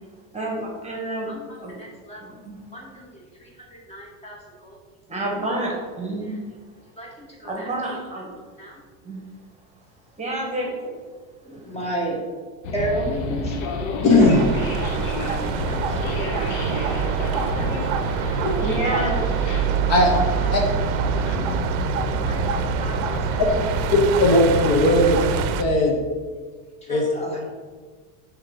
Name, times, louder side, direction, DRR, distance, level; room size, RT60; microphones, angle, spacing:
voice 1, 0.3-1.3 1.6-1.8 2.2-2.6 5.1-6.3 7.4-8.3 9.0-9.2 10.2-10.7 11.5-11.9 18.6-19.2 20.0-20.2, right 2 dB, 15° right, -1 dB, 1.4 m, -29 dB
voice 2, 1.3-2.2 2.7-4.8 6.2-6.4 7.0-7.7 8.6-8.8 11.5-12.2 12.7-13.6 15.2-18.5 20.4-20.5 22.3-23.4 26.9-27.4, right 1 dB, 15° left, -2 dB, 1.7 m, -34 dB
sound 1, 12.6-25.6, left 3 dB, 75° left, 1.0 m, -29 dB
voice 3, 14.0-14.4 19.9-20.1 20.5-20.6 24.2-25.2 25.6-26.0 26.9-27.1, left 1 dB, 40° left, 0 dB, 1.1 m, -17 dB
sound 2, 14.2-25.6, right 9 dB, 65° right, 0.6 m, -26 dB
7.3 x 3.2 x 5.3 m, 1.5 s
supercardioid pair, 120°, 40 cm